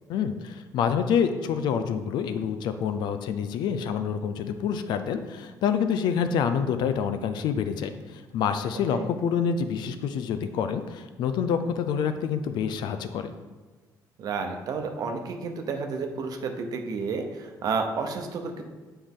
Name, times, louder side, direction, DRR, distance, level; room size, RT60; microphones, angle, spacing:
voice 1, 0.1-13.3, left 7 dB, 80° left, 9 dB, 0.5 m, -27 dB
voice 2, 14.2-18.6, right 4 dB, 60° right, 5 dB, 0.8 m, -31 dB
9.5 x 3.4 x 3.7 m, 1.3 s
cardioid pair, 130°, 7 cm